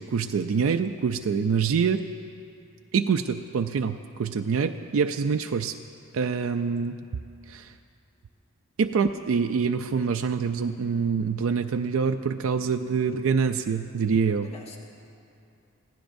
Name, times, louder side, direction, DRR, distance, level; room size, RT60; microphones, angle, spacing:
voice 1, 0.0-2.0 2.9-5.8 6.1-7.0 7.5-7.7 8.8-14.5, right 6 dB, 75° right, 6 dB, 0.4 m, -25 dB
voice 2, 9.3-9.6 13.0-13.2 14.4-14.8, left 2 dB, 30° left, 0 dB, 1.3 m, -48 dB
24.5 x 15.5 x 2.6 m, 2.6 s
head